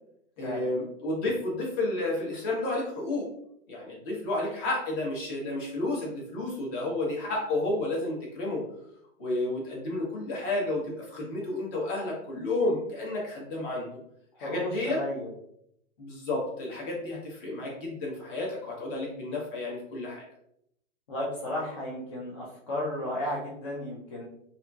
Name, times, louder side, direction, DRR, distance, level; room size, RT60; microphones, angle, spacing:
voice 1, 0.4-3.3 3.7-8.6 9.2-13.9 14.4-15.0 16.0-20.2, left 2 dB, 45° left, -3 dB, 1.2 m, -31 dB
voice 2, 14.4-15.3 21.1-24.3, left 1 dB, 25° left, -5 dB, 0.3 m, -34 dB
2.7 x 2.6 x 2.2 m, 0.74 s
hypercardioid pair, 145°, 38 cm